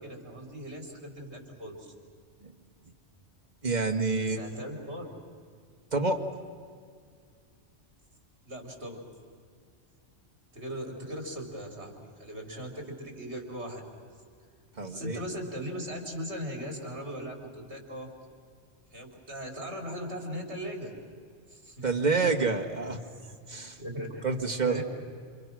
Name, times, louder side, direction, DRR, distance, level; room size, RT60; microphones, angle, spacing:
voice 1, 0.0-1.9 4.2-5.1 8.4-9.0 10.5-13.8 14.8-18.1 18.9-20.9 21.5-22.0 23.8-24.3 24.6-24.8, equal, 70° right, 2 dB, 4.5 m, -39 dB
voice 2, 3.6-4.4 5.9-6.2 14.8-15.2 21.8-23.0 23.5-23.8 24.2-24.8, right 4 dB, 40° right, 3 dB, 1.9 m, -28 dB
28.5 x 28.0 x 6.3 m, 2.1 s
omnidirectional pair, 1.2 m